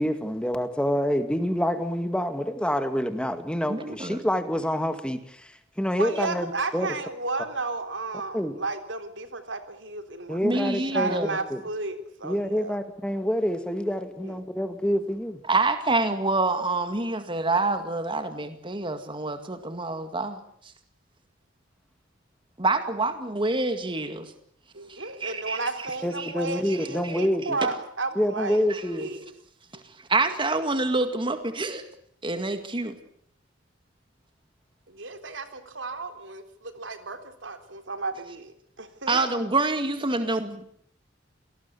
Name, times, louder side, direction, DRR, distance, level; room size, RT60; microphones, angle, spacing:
voice 1, 0.0-6.5 6.7-6.9 8.3-8.6 10.3-11.6 12.2-15.4 26.0-27.6 28.2-29.1, equal, 5° left, 9 dB, 2.0 m, -27 dB
voice 2, 3.7-4.2 10.4-11.4 15.5-20.4 22.6-24.3 24.9-25.6 26.2-26.3 26.7-26.8 27.0-27.2 27.6-27.7 28.7-28.8 30.1-31.8 32.2-33.0 39.1-40.6, right 3 dB, 25° right, 8 dB, 2.0 m, -27 dB
voice 3, 6.0-12.8 14.2-14.4 24.7-28.6 28.9-29.3 34.9-39.2, right 3 dB, 70° right, 8 dB, 3.7 m, -33 dB
28.0 x 19.0 x 8.3 m, 0.67 s
head